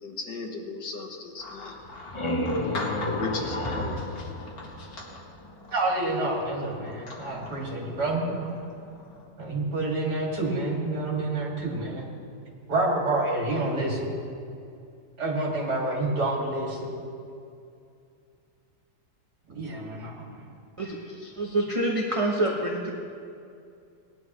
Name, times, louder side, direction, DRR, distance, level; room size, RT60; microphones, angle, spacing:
voice 1, 0.0-1.8 3.1-4.1, left 3 dB, 85° left, 1 dB, 2.0 m, -36 dB
sound 1, 1.4-9.3, left 2 dB, 60° left, 2.1 m, -42 dB
sound 2, 1.8-5.4, left 1 dB, 25° left, 0.6 m, -31 dB
voice 2, 5.7-8.5 9.4-12.1 12.7-14.1 15.2-16.9 19.5-20.4, right 2 dB, 65° right, -4 dB, 2.9 m, -28 dB
voice 3, 20.8-22.9, right 1 dB, 25° right, -2 dB, 0.8 m, -27 dB
18.5 x 10.5 x 3.1 m, 2.4 s
omnidirectional pair, 1.8 m